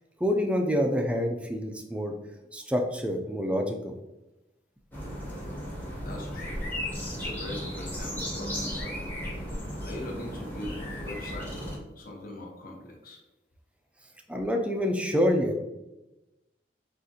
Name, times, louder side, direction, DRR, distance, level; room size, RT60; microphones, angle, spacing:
voice 1, 0.2-2.1 2.5-3.9 14.3-15.6, equal, 5° right, 3 dB, 0.4 m, -27 dB
sound 1, 4.9-11.8, equal, 10° left, 0.9 m, -35 dB
voice 2, 6.0-6.7 7.1-9.1 9.8-13.2, left 1 dB, 55° left, -1 dB, 1.0 m, -41 dB
6.4 x 2.5 x 2.8 m, 1.0 s
head